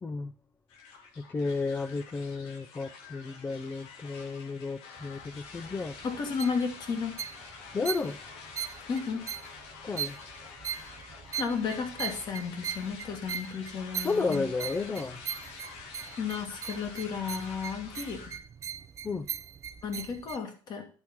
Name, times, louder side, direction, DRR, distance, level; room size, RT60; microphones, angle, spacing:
voice 1, 0.0-0.3 1.2-5.9 7.7-8.2 9.8-10.2 14.0-15.2 19.0-19.3, left 4 dB, 20° left, 0.5 m, -32 dB
sound 1, 0.7-18.4, left 5 dB, 80° left, 1.7 m, -48 dB
sound 2, 5.0-20.4, right 8 dB, 35° right, 0.5 m, -40 dB
voice 2, 6.0-7.2 8.9-9.3 11.4-14.4 16.2-18.2 19.8-20.9, left 5 dB, 45° left, 2.0 m, -33 dB
10.5 x 4.3 x 5.8 m
cardioid pair, 120°, 10 cm